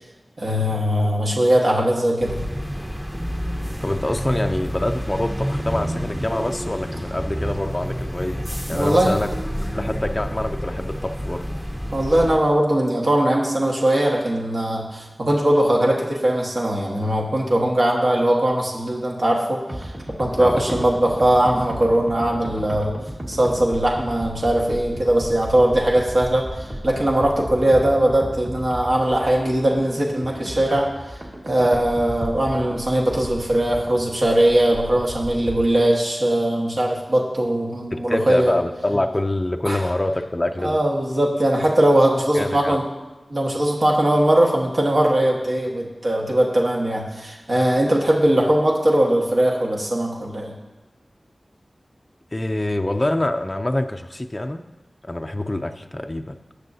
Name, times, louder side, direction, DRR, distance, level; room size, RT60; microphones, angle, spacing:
voice 1, 0.4-2.4 8.7-9.2 11.9-19.9 20.2-23.0 23.3-38.5 39.6-39.8 40.6-42.8 43.3-50.5, right 1 dB, 60° right, -2 dB, 1.4 m, -20 dB
sound 1, 2.2-12.4, equal, 10° right, 0.9 m, -29 dB
voice 2, 3.8-9.3 9.7-11.4 20.4-20.8 37.9-40.8 42.3-42.8 52.3-54.6 55.0-56.4, left 1 dB, 25° left, 5 dB, 0.4 m, -25 dB
sound 2, 19.7-35.7, equal, 35° right, 1.6 m, -34 dB
18.0 x 6.4 x 2.7 m, 1.1 s
wide cardioid pair, 85°, 0 cm